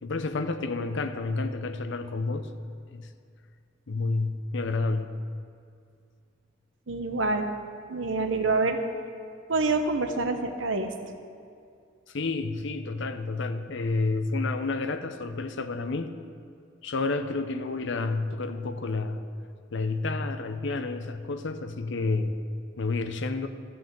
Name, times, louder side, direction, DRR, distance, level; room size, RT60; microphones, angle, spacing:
voice 1, 0.0-2.5 2.9-3.1 3.9-5.2 12.1-16.1 16.8-19.2 19.7-22.4 22.8-23.5, left 3 dB, 65° left, 9 dB, 0.7 m, -30 dB
voice 2, 6.9-7.5 7.9-8.8 9.5-10.9, right 3 dB, 70° right, 6 dB, 0.9 m, -26 dB
13.5 x 5.5 x 7.4 m, 2.4 s
head